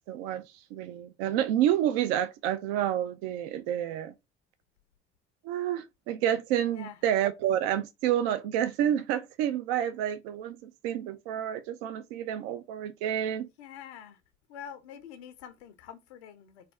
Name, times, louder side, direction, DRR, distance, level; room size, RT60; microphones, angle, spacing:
voice 1, 0.1-0.4 0.7-4.1 5.4-13.5, right 11 dB, 65° right, 0.5 m, -29 dB
voice 2, 13.6-14.2 14.5-16.7, left 9 dB, 75° left, 0.6 m, -46 dB
2.4 x 2.2 x 3.5 m
figure-of-eight pair, 55°, 33 cm